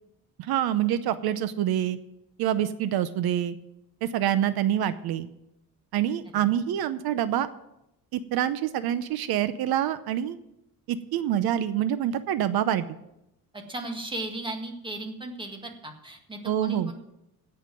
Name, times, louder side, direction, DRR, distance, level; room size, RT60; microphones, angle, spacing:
voice 1, 0.4-2.0 2.4-3.6 4.0-5.3 5.9-7.5 8.1-10.4 10.9-13.0 16.4-16.9, right 11 dB, 80° right, 13 dB, 0.8 m, -26 dB
voice 2, 13.5-16.9, right 2 dB, 15° right, 3 dB, 1.8 m, -36 dB
16.5 x 5.8 x 7.6 m, 0.86 s
cardioid pair, 150°, 36 cm